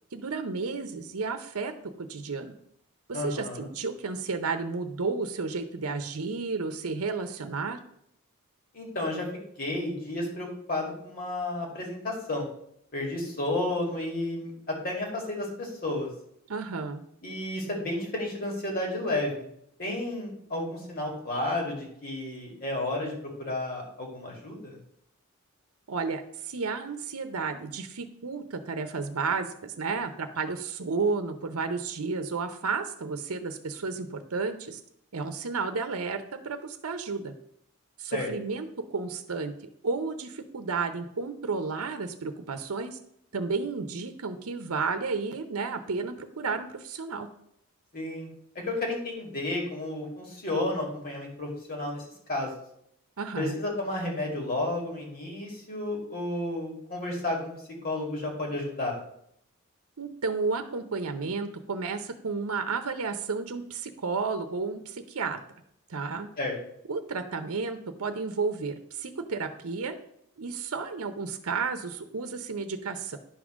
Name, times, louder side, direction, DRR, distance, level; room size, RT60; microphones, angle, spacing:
voice 1, 0.1-1.7 2.0-2.5 3.1-7.8 16.5-17.0 25.9-34.8 35.1-37.3 38.0-39.5 39.8-43.0 43.3-47.3 53.2-53.5 60.0-65.4 65.9-66.3 66.9-70.0 70.4-73.2, right 4 dB, 85° right, 8 dB, 0.7 m, -32 dB
voice 2, 3.1-3.7 8.7-9.3 9.6-12.4 12.9-16.1 17.2-19.4 19.8-24.8 38.1-38.3 47.9-48.3 48.6-52.5 53.4-57.4 57.8-59.0 66.4-66.5, left 2 dB, 40° left, 0 dB, 2.3 m, -32 dB
10.0 x 3.7 x 6.2 m, 0.72 s
head